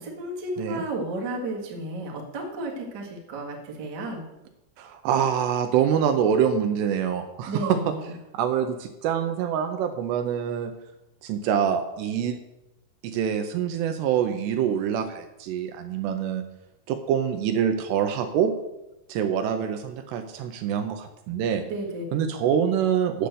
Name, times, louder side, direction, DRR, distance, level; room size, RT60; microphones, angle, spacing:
voice 1, 0.0-4.2 7.5-8.1 21.7-22.4, right 2 dB, 65° right, -1 dB, 1.0 m, -33 dB
voice 2, 4.8-7.8 8.3-10.7 11.2-12.4 13.0-16.4 16.9-18.6 19.1-21.6 22.1-23.3, right 8 dB, 80° right, 7 dB, 2.6 m, -25 dB
8.5 x 6.7 x 7.8 m, 0.94 s
omnidirectional pair, 5.3 m